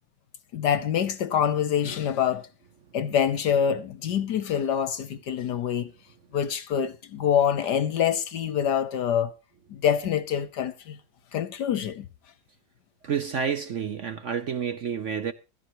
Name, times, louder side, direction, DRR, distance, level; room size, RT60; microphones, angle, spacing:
voice 1, 0.5-2.5 2.9-5.9 6.3-9.3 9.7-11.0 11.3-12.1, left 8 dB, 65° left, 1.3 m, -25 dB
voice 2, 13.0-15.3, right 7 dB, 60° right, 0.8 m, -29 dB
16.0 x 14.0 x 3.0 m
omnidirectional pair, 2.1 m